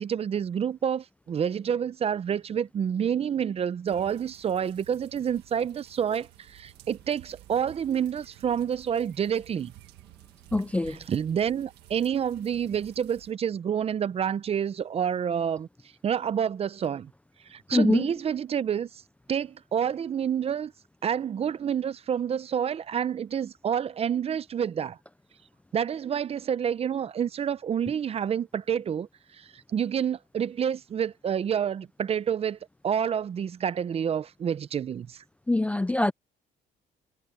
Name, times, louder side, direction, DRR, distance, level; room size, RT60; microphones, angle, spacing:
voice 1, 0.0-9.7 11.1-15.7 16.0-17.1 17.5-19.0 19.3-20.7 21.0-25.0 25.7-29.1 29.3-32.6 32.8-35.2, right 8 dB, 35° right, 0.6 m, -28 dB
sound 1, 3.9-13.3, right 16 dB, 80° right, 1.7 m, -52 dB
voice 2, 10.5-11.0 17.7-18.1 35.5-36.1, left 2 dB, 10° left, 0.4 m, -24 dB
cardioid pair, 110°, 17 cm